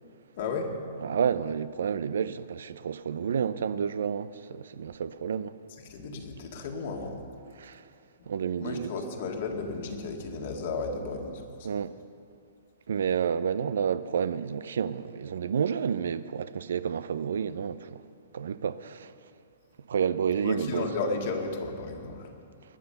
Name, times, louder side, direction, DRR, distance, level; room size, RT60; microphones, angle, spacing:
voice 1, 0.4-0.7 5.8-7.2 8.6-11.7 20.4-22.3, left 3 dB, 55° left, 2.0 m, -34 dB
voice 2, 1.0-5.5 7.6-7.8 8.3-8.9 11.6-11.9 12.9-18.0 18.3-19.1 19.9-20.9, right 7 dB, 75° right, 0.5 m, -30 dB
20.5 x 6.9 x 6.8 m
hypercardioid pair, 130°, 0 cm